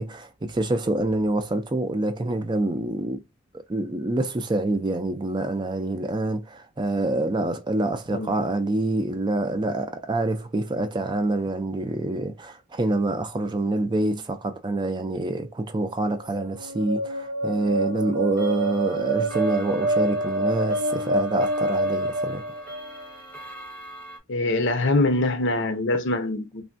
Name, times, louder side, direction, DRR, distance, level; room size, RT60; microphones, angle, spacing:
voice 1, 0.0-3.2 3.5-22.4, right 2 dB, 25° right, 0.4 m, -26 dB
sound 1, 16.2-23.1, right 2 dB, 70° right, 0.7 m, -27 dB
Clock, 18.4-24.2, right 1 dB, 5° left, 0.8 m, -43 dB
voice 2, 24.3-26.6, left 2 dB, 65° left, 0.6 m, -23 dB
3.4 x 2.2 x 2.5 m
head